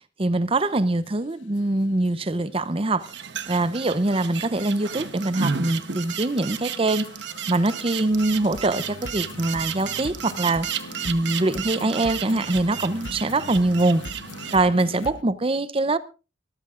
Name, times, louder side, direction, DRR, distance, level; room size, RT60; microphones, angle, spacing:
voice 1, 0.2-3.1 3.5-7.1 7.5-10.7 11.1-14.0 14.5-16.0, right 2 dB, 30° right, 0.7 m, -23 dB
sound 1, 0.6-0.7 1.1-1.2 1.6-1.7 2.1-2.2 2.6-2.7 3.1-3.2 3.5-15.2, left 3 dB, 75° left, 0.9 m, -42 dB
sound 2, 3.0-14.6, right 7 dB, 60° right, 1.0 m, -33 dB
23.5 x 14.0 x 2.5 m
head